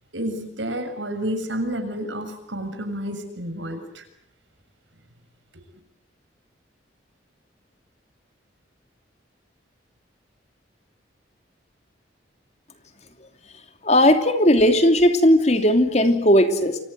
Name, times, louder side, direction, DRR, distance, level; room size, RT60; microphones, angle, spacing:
voice 1, 0.1-4.0 5.5-5.6, equal, 85° right, 7 dB, 6.8 m, -30 dB
voice 2, 13.8-16.8, left 1 dB, 35° left, 7 dB, 3.0 m, -17 dB
29.5 x 24.0 x 8.1 m, 0.73 s
head